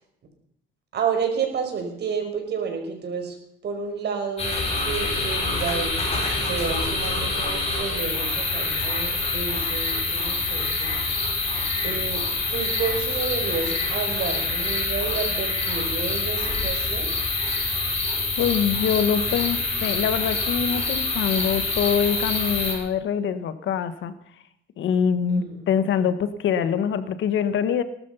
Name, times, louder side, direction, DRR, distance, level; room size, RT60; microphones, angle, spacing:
voice 1, 0.9-3.4 3.6-5.9 6.4-10.9 11.8-12.2 12.5-17.1 25.3-25.6, right 6 dB, 55° right, 4 dB, 5.4 m, -30 dB
sound 1, 4.4-22.7, left 3 dB, 30° left, 6.6 m, -26 dB
voice 2, 18.4-24.1 24.8-27.8, left 7 dB, 65° left, 12 dB, 1.5 m, -24 dB
19.5 x 12.5 x 5.7 m, 0.73 s
cardioid pair, 125°, 21 cm